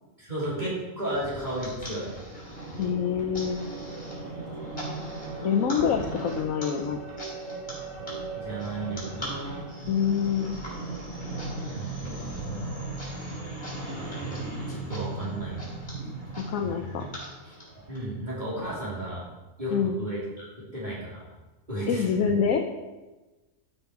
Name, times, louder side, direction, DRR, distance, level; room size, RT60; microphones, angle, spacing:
voice 1, 0.2-2.1 8.3-9.6 11.5-12.1 12.4-12.8 14.0-15.8 16.6-16.9 17.4-17.5 17.9-19.2 19.6-21.2 21.7-22.1, right 1 dB, 30° right, -8 dB, 3.3 m, -34 dB
sound 1, 1.1-18.0, right 2 dB, 30° left, 4.3 m, -37 dB
voice 2, 2.8-3.6 5.4-7.0 9.9-10.6 16.5-17.1 19.7-20.0 21.9-22.6, left 7 dB, 75° left, 4 dB, 1.2 m, -26 dB
15.5 x 6.8 x 4.7 m, 1.2 s
omnidirectional pair, 1.4 m